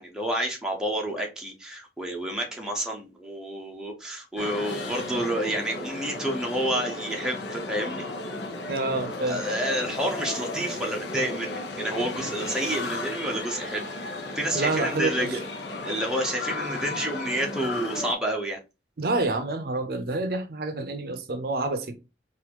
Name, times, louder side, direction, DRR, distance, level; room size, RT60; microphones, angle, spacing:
voice 1, 0.0-8.1 9.3-14.1 14.3-15.4 15.8-18.6, right 1 dB, 5° right, 0.7 m, -29 dB
sound 1, 4.4-18.1, left 2 dB, 80° left, 0.7 m, -34 dB
voice 2, 8.7-9.4 14.5-15.3 19.0-21.9, right 2 dB, 55° right, 0.5 m, -28 dB
4.0 x 2.5 x 2.8 m
head